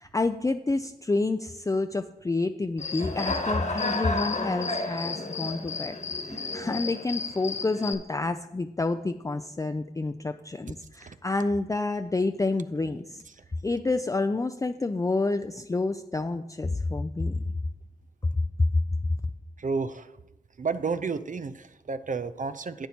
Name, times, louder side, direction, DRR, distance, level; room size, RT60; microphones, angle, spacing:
voice 1, 0.0-6.0 6.3-13.2 13.6-17.4 18.6-18.8, left 3 dB, 20° left, 7 dB, 0.4 m, -28 dB
Human voice / Cricket, 2.8-7.9, left 3 dB, 50° left, 1.3 m, -31 dB
voice 2, 19.6-20.2 20.6-22.9, right 4 dB, 55° right, 12 dB, 0.5 m, -31 dB
11.0 x 8.0 x 2.8 m, 0.93 s
cardioid pair, 40°, 16 cm